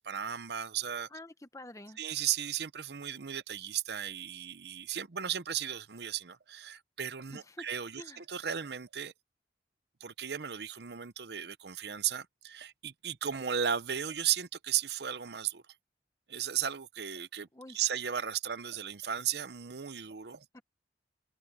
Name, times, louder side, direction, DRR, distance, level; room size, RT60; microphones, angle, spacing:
voice 1, 0.0-1.1 2.0-9.1 10.0-15.6 16.3-17.5 17.7-20.4, right 9 dB, 65° right, 0.8 m, -35 dB
voice 2, 1.1-2.0 7.3-7.7 8.0-8.2 17.5-17.8 20.5-20.6, left 1 dB, 20° left, 1.0 m, -48 dB
head